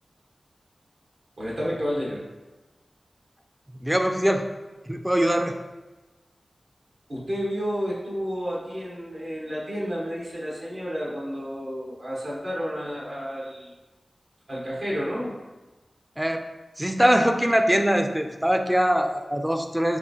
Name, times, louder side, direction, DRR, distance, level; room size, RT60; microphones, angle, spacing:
voice 1, 1.4-2.2 7.1-13.7 14.5-15.4, equal, 65° right, -6 dB, 1.2 m, -31 dB
voice 2, 3.8-4.5 4.9-5.5 16.2-16.4 16.8-20.0, equal, 10° right, 5 dB, 0.4 m, -22 dB
5.6 x 2.4 x 2.7 m, 1.2 s
cardioid pair, 50°, 0 cm